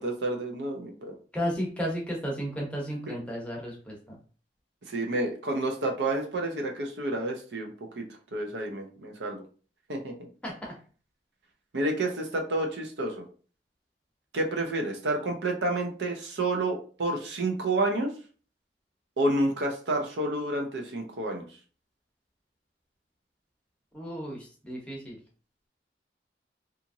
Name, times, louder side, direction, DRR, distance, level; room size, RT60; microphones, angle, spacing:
voice 1, 0.0-1.1 3.1-3.2 4.9-8.1 8.3-9.4 9.9-10.1 11.7-13.2 14.3-18.1 19.2-21.4, right 2 dB, 85° right, 2 dB, 0.6 m, -29 dB
voice 2, 1.3-4.2 10.4-10.5 23.9-25.2, equal, 5° left, -3 dB, 0.7 m, -33 dB
2.8 x 2.5 x 2.6 m, 0.40 s
head